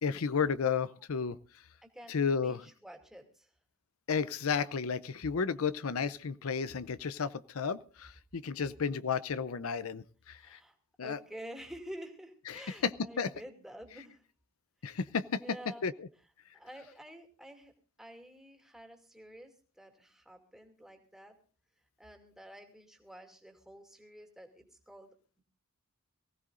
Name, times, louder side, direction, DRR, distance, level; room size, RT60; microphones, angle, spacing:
voice 1, 0.0-1.4 2.1-2.6 4.1-10.6 11.0-11.2 13.2-13.3 14.8-15.4 15.8-16.1, left 6 dB, 80° left, 15 dB, 0.6 m, -32 dB
voice 2, 1.8-3.5 10.3-10.8 11.0-14.2 14.8-15.0 15.4-15.9 16.5-17.7 18.0-21.4 22.0-25.1 25.4-25.5, equal, ahead, 3 dB, 2.5 m, -50 dB
23.5 x 16.0 x 2.5 m, 0.39 s
head